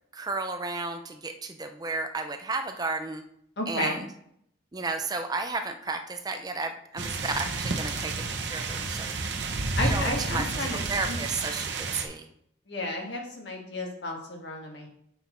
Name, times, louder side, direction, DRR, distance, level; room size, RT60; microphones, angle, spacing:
voice 1, 0.1-3.2 3.7-4.1 4.7-9.2 9.8-12.3, right 3 dB, 20° right, 6 dB, 0.5 m, -33 dB
voice 2, 3.6-4.0 9.7-11.2 12.7-14.9, left 2 dB, 65° left, 1 dB, 1.6 m, -33 dB
sound 1, 7.0-12.1, right 3 dB, 60° right, 0.9 m, -31 dB
6.2 x 5.5 x 4.4 m, 0.71 s
head